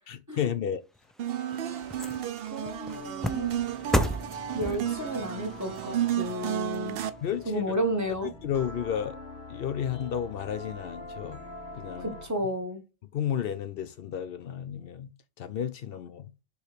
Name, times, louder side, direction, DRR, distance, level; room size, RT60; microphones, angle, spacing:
voice 1, 0.1-0.8 7.2-7.7 8.2-9.2 9.5-11.4 11.7-12.1 13.1-15.1 15.4-16.3, left 9 dB, 70° left, 0.8 m, -32 dB
sound 1, 0.9-7.4 7.9-8.0, equal, ahead, 0.3 m, -35 dB
sound 2, 1.2-7.1, right 11 dB, 70° right, 0.8 m, -32 dB
voice 2, 2.5-3.6 4.5-7.0 7.5-8.3 12.0-12.8, right 1 dB, 15° right, 1.1 m, -32 dB
sound 3, 2.9-12.4, left 2 dB, 50° left, 1.4 m, -45 dB
6.9 x 3.1 x 5.0 m
omnidirectional pair, 1.0 m